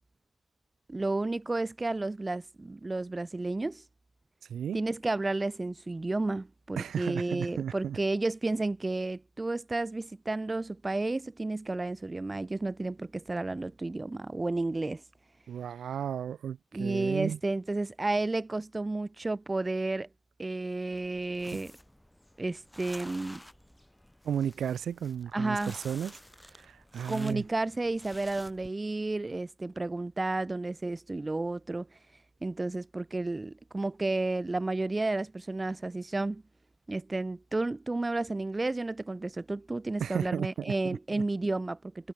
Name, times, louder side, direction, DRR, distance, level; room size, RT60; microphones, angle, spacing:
voice 1, 0.9-3.8 4.7-15.0 16.7-20.1 20.4-21.8 22.4-23.4 25.3-25.7 27.0-32.0 32.4-36.4 36.9-42.1, right 2 dB, 15° right, 1.3 m, -32 dB
voice 2, 6.8-8.0 15.5-17.4 21.5-21.6 24.2-26.1 26.6-27.4 40.0-41.2, right 9 dB, 65° right, 2.1 m, -34 dB
sound 1, 20.9-28.7, left 1 dB, 5° left, 7.9 m, -52 dB
cardioid pair, 125°, 0 cm